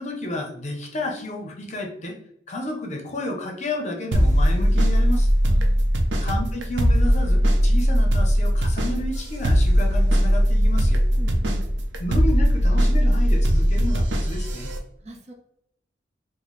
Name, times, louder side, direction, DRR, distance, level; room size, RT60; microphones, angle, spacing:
voice 1, 0.0-2.2 2.5-5.3 6.2-11.0 12.0-14.7, left 1 dB, 40° left, 1 dB, 0.6 m, -31 dB
sound 1, 4.1-14.8, equal, 85° right, 0.6 m, -19 dB
voice 2, 5.5-5.9 11.1-11.7 15.0-15.3, right 2 dB, 40° right, 1 dB, 0.7 m, -41 dB
4.2 x 2.1 x 3.1 m, 0.75 s
head